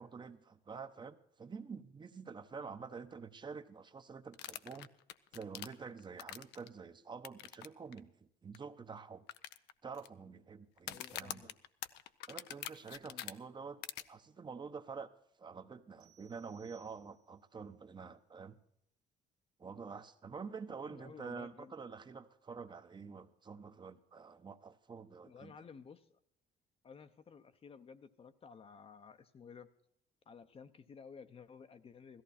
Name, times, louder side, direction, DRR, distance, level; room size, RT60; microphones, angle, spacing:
voice 1, 0.0-4.9 5.3-9.3 9.8-11.5 12.3-13.8 14.1-15.1 15.4-18.5 19.6-25.6, right 5 dB, 25° right, 10 dB, 0.9 m, -48 dB
sound 1, 4.3-6.7 7.2-7.7 7.9-8.0 8.5-8.6 9.3-10.1 10.8-13.3 13.8-14.0, left 13 dB, 85° left, 0.6 m, -44 dB
voice 2, 10.9-11.5 13.0-13.2 20.8-21.7 25.2-26.1 26.8-29.7 30.3-32.2, left 6 dB, 35° left, 10 dB, 0.8 m, -54 dB
sound 2, 16.0-17.5, right 11 dB, 80° right, 1.3 m, -67 dB
16.5 x 14.0 x 4.2 m, 0.73 s
cardioid pair, 110°, 17 cm